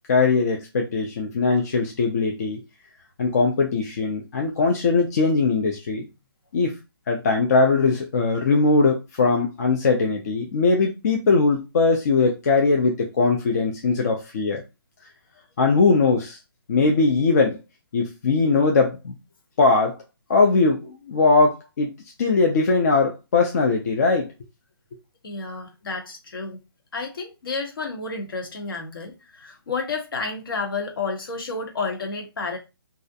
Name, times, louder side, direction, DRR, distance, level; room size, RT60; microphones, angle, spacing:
voice 1, 0.1-2.6 3.2-6.1 6.5-6.7 7.1-14.6 15.6-16.4 16.7-17.6 17.9-19.0 19.6-20.0 20.3-21.9 22.2-24.3, left 3 dB, 40° left, 0.5 m, -20 dB
voice 2, 25.2-26.6 26.9-32.6, left 4 dB, 60° left, 0.9 m, -31 dB
2.4 x 2.0 x 2.7 m
hypercardioid pair, 155°, 13 cm